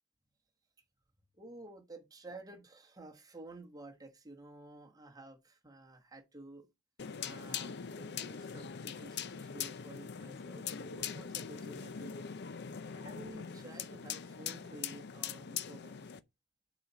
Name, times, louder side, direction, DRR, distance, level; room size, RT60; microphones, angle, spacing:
voice 1, 1.3-6.7 7.2-12.3 12.9-16.0, right 2 dB, 15° right, 1.3 m, -52 dB
sound 1, 7.0-16.2, left 7 dB, 50° left, 0.5 m, -42 dB
6.3 x 4.2 x 6.0 m
head